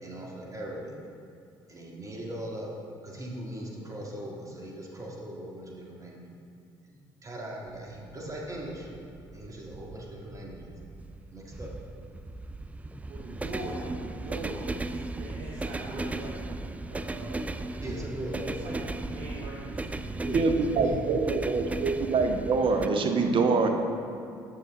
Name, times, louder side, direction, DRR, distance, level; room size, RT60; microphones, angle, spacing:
voice 1, 0.0-0.9 1.7-2.7 3.0-6.2 6.8-8.9 9.3-10.7 11.3-11.7 17.8-18.6 19.2-19.3 20.1-21.0, right 1 dB, 30° right, -2 dB, 1.9 m, -39 dB
sound 1, 7.7-22.9, right 2 dB, 10° right, 0.3 m, -36 dB
voice 2, 13.1-16.6 16.9-17.8 18.4-20.2, right 2 dB, 70° right, -4 dB, 1.0 m, -42 dB
voice 3, 20.3-23.7, right 4 dB, 50° right, 5 dB, 0.8 m, -25 dB
8.5 x 6.8 x 3.6 m, 2.4 s
hypercardioid pair, 55°, 11 cm